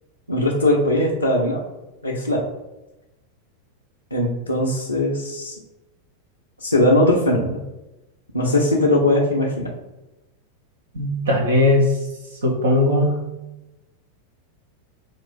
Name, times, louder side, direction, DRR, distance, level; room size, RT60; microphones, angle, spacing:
voice 1, 0.3-1.6 2.0-2.5 4.1-5.6 6.6-7.6 8.3-9.6, left 1 dB, 85° left, -5 dB, 0.6 m, -19 dB
voice 2, 10.9-12.0 12.4-13.3, left 2 dB, 70° right, 0 dB, 0.8 m, -18 dB
5.3 x 2.5 x 3.7 m, 0.98 s
figure-of-eight pair, 90°, 0 cm